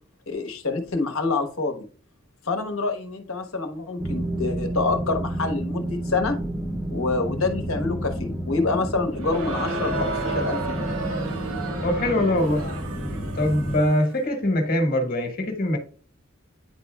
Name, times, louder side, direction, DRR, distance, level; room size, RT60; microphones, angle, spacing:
voice 1, 0.3-1.8 2.4-6.4 6.9-11.0, left 3 dB, 85° left, 6 dB, 1.2 m, -27 dB
sound 1, 4.0-13.8, right 1 dB, 5° left, 0.6 m, -30 dB
Crowd, 9.1-14.1, right 2 dB, 85° right, 1.0 m, -32 dB
voice 2, 11.8-12.7 13.4-15.8, left 1 dB, 45° left, 4 dB, 1.4 m, -23 dB
9.8 x 4.2 x 2.3 m, 0.40 s
head